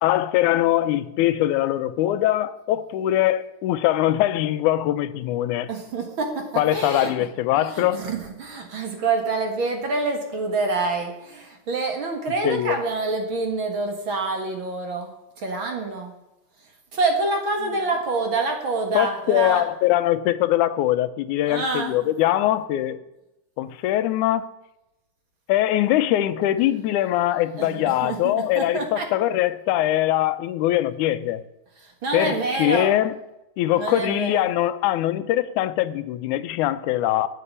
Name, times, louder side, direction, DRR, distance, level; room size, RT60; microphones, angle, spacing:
voice 1, 0.0-5.7 6.6-8.0 12.4-12.8 18.9-23.0 23.6-24.5 25.5-31.4 32.1-33.2 33.6-37.3, left 13 dB, 90° left, 2.2 m, -22 dB
voice 2, 5.7-7.1 7.5-16.1 16.9-19.6 21.5-22.1 27.6-29.1 31.8-32.9 33.7-34.4, right 3 dB, 45° right, 2.2 m, -27 dB
9.8 x 8.9 x 8.5 m
omnidirectional pair, 3.4 m